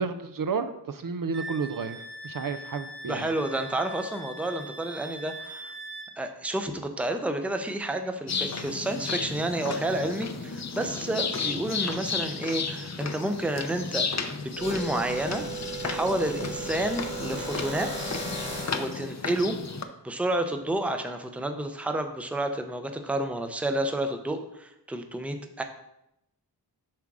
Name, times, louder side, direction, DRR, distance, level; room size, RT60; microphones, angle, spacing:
voice 1, 0.0-3.3, right 5 dB, 55° right, 9 dB, 0.5 m, -31 dB
Wind instrument woodwind instrument, 1.3-6.1, right 1 dB, 70° right, 1.3 m, -41 dB
voice 2, 3.0-5.7 6.2-15.4 15.8-17.9 18.7-19.5 20.0-25.6, right 1 dB, 5° right, 6 dB, 0.6 m, -30 dB
sound 1, 8.3-19.8, left 5 dB, 40° left, 0.6 m, -33 dB
sound 2, 14.6-19.0, right 2 dB, 90° left, 3.1 m, -36 dB
7.5 x 3.6 x 6.0 m, 0.84 s
wide cardioid pair, 120°, 41 cm